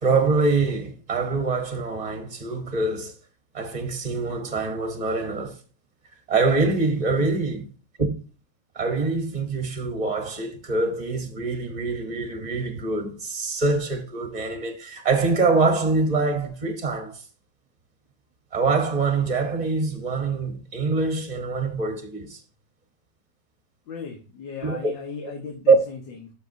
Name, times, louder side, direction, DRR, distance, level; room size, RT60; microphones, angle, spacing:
voice 1, 0.0-3.1 3.5-5.6 6.3-7.6 8.0-8.2 8.7-17.2 18.5-22.4 24.6-24.9 25.2-25.3 25.7-25.8, right 3 dB, 30° right, 0.8 m, -24 dB
voice 2, 23.9-26.3, left 5 dB, 90° left, 2.0 m, -37 dB
11.0 x 6.6 x 2.7 m
omnidirectional pair, 1.9 m